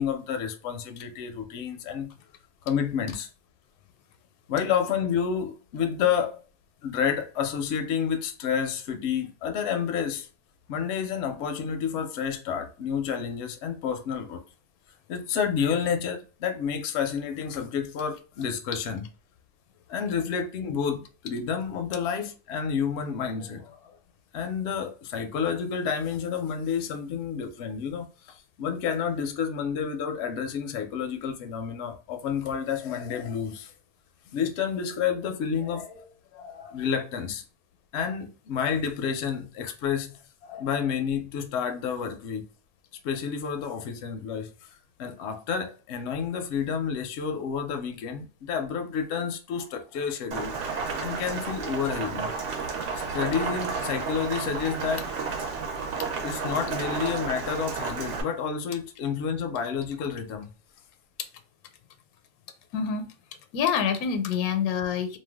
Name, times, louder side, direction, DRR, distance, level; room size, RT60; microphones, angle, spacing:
voice 1, 0.0-2.1 2.6-3.3 4.5-6.4 6.8-10.3 10.7-14.4 15.1-19.0 19.9-24.0 24.3-33.7 34.3-37.4 37.9-42.4 43.0-44.5 45.0-52.3 53.1-55.1 56.2-60.5, left 7 dB, 65° left, 0.7 m, -30 dB
Rain, 50.3-58.2, right 5 dB, 65° right, 0.9 m, -32 dB
voice 2, 62.7-63.0 63.5-65.2, left 7 dB, 90° left, 1.0 m, -26 dB
2.5 x 2.2 x 3.3 m
omnidirectional pair, 1.5 m